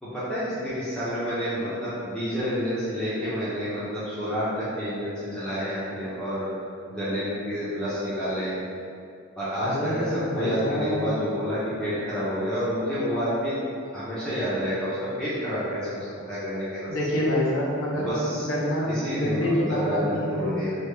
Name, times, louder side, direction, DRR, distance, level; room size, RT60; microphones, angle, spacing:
voice 1, 0.0-6.5 6.9-8.6 9.4-13.6 13.9-16.9 17.9-18.5 18.9-20.8, equal, 5° left, -12 dB, 0.6 m, -29 dB
voice 2, 9.6-11.2 16.9-20.6, left 1 dB, 65° left, -4 dB, 0.6 m, -27 dB
3.3 x 2.1 x 3.2 m, 2.4 s
head